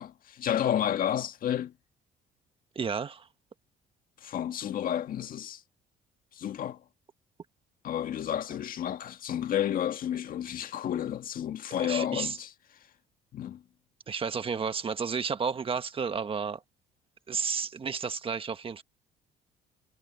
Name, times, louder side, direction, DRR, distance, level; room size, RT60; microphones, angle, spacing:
voice 1, 0.0-1.7 4.2-5.6 6.3-6.8 7.8-12.5 13.3-13.6, left 10 dB, 55° left, 1.8 m, -31 dB
voice 2, 2.7-3.3 11.8-12.4 14.1-16.6 17.3-18.8, right 6 dB, 30° right, 1.6 m, -32 dB
cardioid pair, 110°, 17 cm